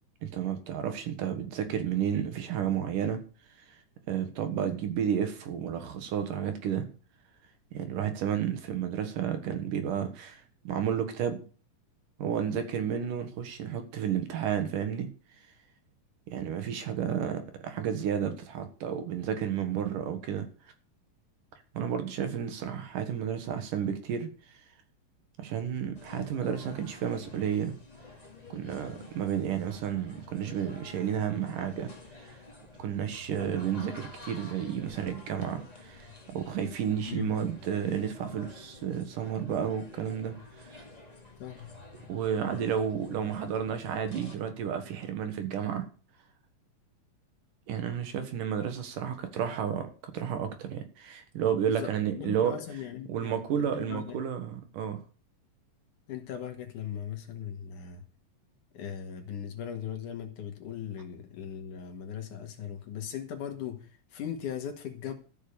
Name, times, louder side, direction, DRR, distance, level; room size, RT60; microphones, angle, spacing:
voice 1, 0.2-3.2 4.1-6.9 7.7-11.4 12.2-15.1 16.3-20.5 21.7-24.3 25.4-27.7 28.5-31.9 32.2-32.4 32.8-40.8 42.1-45.9 47.7-52.6 53.1-55.0, right 8 dB, 70° right, 3.0 m, -31 dB
sound 1, 25.9-44.4, left 2 dB, 15° left, 1.7 m, -49 dB
voice 2, 51.6-54.2 56.1-58.0 58.7-65.1, left 9 dB, 65° left, 3.1 m, -39 dB
13.5 x 6.7 x 6.9 m
omnidirectional pair, 4.0 m